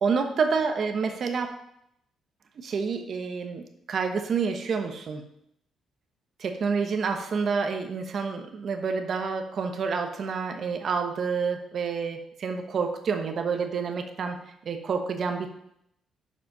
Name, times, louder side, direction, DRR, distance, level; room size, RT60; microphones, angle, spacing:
voice 1, 0.0-1.6 2.6-5.2 6.4-15.5, right 5 dB, 55° right, 5 dB, 1.1 m, -28 dB
7.1 x 5.3 x 5.4 m, 0.76 s
cardioid pair, 90°, 0 cm